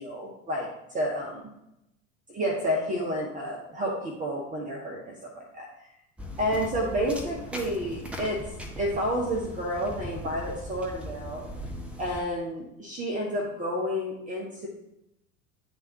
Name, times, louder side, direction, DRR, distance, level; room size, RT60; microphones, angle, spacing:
voice 1, 0.0-1.5 2.3-5.7 6.4-8.4 8.8-11.4 12.0-14.7, equal, 20° right, -2 dB, 1.0 m, -30 dB
sound 1, 6.2-12.2, left 1 dB, 5° right, 0.6 m, -39 dB
9.5 x 3.5 x 2.8 m, 0.86 s
figure-of-eight pair, 75°, 42 cm